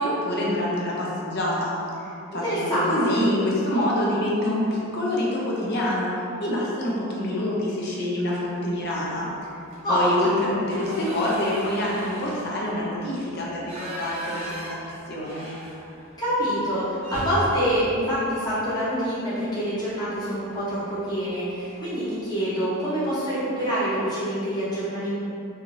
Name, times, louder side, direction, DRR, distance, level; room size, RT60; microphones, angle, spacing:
voice 1, 0.0-6.2 6.4-9.3 9.9-14.8 15.1-15.5, left 1 dB, 45° left, -5 dB, 0.5 m, -26 dB
voice 2, 2.4-3.2 9.8-10.5 16.2-25.1, equal, 20° left, -11 dB, 0.8 m, -26 dB
sound 1, 8.8-9.2 9.6-9.8 10.1-16.2 16.5-16.6 17.0-19.1 20.5-20.7 21.1-21.3 21.6-22.2, equal, 25° right, 0.6 m, -38 dB
2.6 x 2.4 x 3.1 m, 2.7 s
head